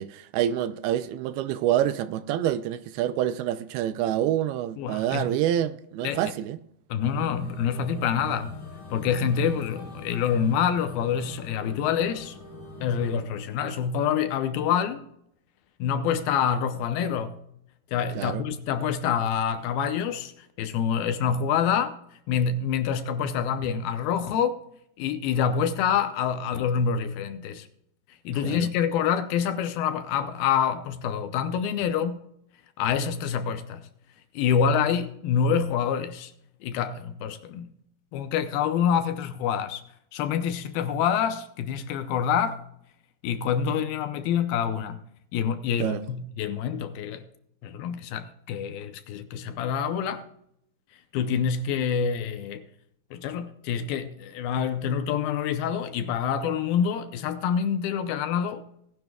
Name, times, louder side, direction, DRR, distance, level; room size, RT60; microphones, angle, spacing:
voice 1, 0.0-6.6 18.2-18.4 28.4-28.7 45.8-46.0, right 11 dB, 80° right, 2.4 m, -27 dB
voice 2, 4.8-5.4 6.0-6.3 6.9-8.6 8.9-12.4 12.8-15.1 15.8-17.4 17.9-22.0 22.3-24.6 25.0-27.7 28.2-32.2 32.8-33.9 34.3-36.3 36.6-37.7 38.1-39.8 40.1-42.6 43.2-45.0 45.3-47.3 47.6-50.2 51.1-52.6 53.1-58.6, left 7 dB, 75° left, 2.4 m, -26 dB
sound 1, 7.0-13.2, left 3 dB, 40° left, 3.7 m, -42 dB
18.5 x 10.5 x 2.3 m
omnidirectional pair, 4.7 m